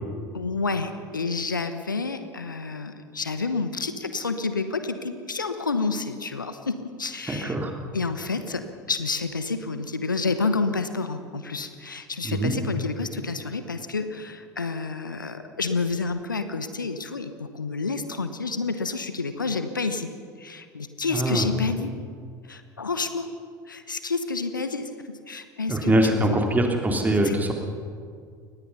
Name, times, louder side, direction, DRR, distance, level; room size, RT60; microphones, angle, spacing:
voice 1, 0.3-7.5 7.9-20.1 20.4-22.0 22.5-23.3 23.7-26.4 27.2-27.5, left 4 dB, 85° left, 9 dB, 1.1 m, -29 dB
voice 2, 7.3-7.7 12.2-12.5 21.1-21.5 25.7-27.5, right 1 dB, 15° right, 3 dB, 3.2 m, -23 dB
23.5 x 19.5 x 5.7 m, 2.1 s
figure-of-eight pair, 70°, 10 cm